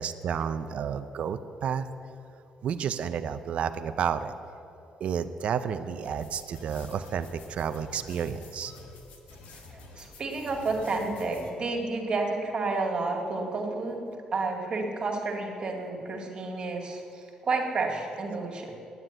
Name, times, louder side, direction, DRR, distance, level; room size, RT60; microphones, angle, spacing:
voice 1, 0.0-1.9 2.6-4.3 5.0-8.7, right 7 dB, 60° right, 10 dB, 0.5 m, -31 dB
sound 1, 6.0-11.5, left 3 dB, 80° left, 1.6 m, -48 dB
voice 2, 9.5-14.1 14.3-18.8, right 3 dB, 40° right, 1 dB, 2.1 m, -31 dB
9.8 x 9.4 x 8.9 m, 2.8 s
cardioid pair, 115°, 2 cm